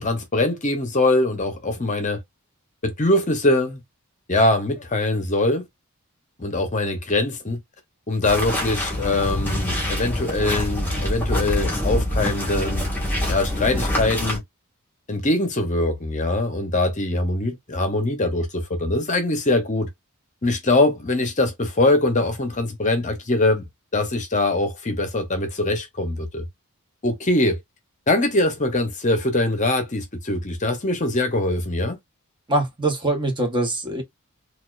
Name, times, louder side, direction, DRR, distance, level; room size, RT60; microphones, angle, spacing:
voice 1, 0.0-2.2 2.8-3.8 4.3-5.7 6.4-7.6 8.1-12.8 13.3-14.4 15.1-19.9 20.4-23.7 23.9-26.5 27.0-27.6 28.1-32.0, left 2 dB, 35° left, 0.8 m, -22 dB
sound 1, 8.2-14.4, left 1 dB, 10° left, 1.6 m, -25 dB
voice 2, 32.5-34.0, right 2 dB, 20° right, 1.0 m, -23 dB
4.1 x 2.4 x 2.4 m
head